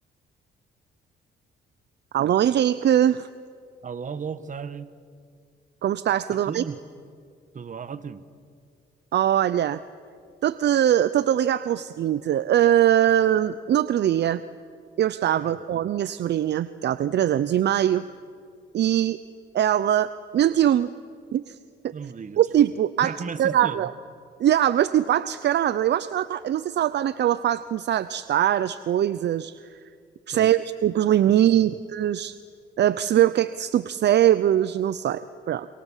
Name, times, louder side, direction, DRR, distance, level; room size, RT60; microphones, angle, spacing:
voice 1, 2.1-3.3 5.8-6.6 9.1-9.8 10.4-14.4 15.0-18.1 18.7-19.2 19.5-20.9 21.3-21.6 21.8-21.9 22.4-23.1 23.4-23.9 24.4-29.8 30.3-32.4 32.8-35.7, right 11 dB, 60° right, 14 dB, 0.7 m, -22 dB
voice 2, 3.8-4.9 6.3-6.8 7.5-8.2 15.4-15.6 21.9-22.4 23.0-23.9 30.3-30.5 31.3-31.7, right 6 dB, 40° right, 12 dB, 1.4 m, -35 dB
27.5 x 26.5 x 7.4 m, 2.2 s
cardioid pair, 90°, 20 cm